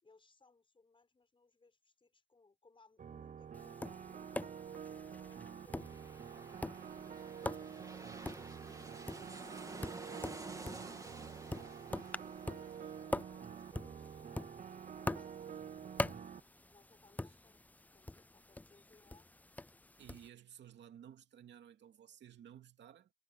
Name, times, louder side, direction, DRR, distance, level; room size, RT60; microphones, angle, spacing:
voice 1, 0.0-4.5 4.8-6.0 6.6-8.6 9.3-14.2 15.0-16.1 16.7-17.6 17.9-19.3, left 3 dB, 25° left, 7.0 m, -68 dB
sound 1, 3.0-16.4, right 8 dB, 40° right, 0.8 m, -48 dB
Tap, 3.5-20.3, left 2 dB, 10° left, 0.4 m, -45 dB
sound 2, 5.3-16.7 17.0-17.1, right 2 dB, 15° right, 2.9 m, -53 dB
voice 2, 20.0-23.1, right 9 dB, 65° right, 2.6 m, -56 dB
cardioid pair, 90°, 20 cm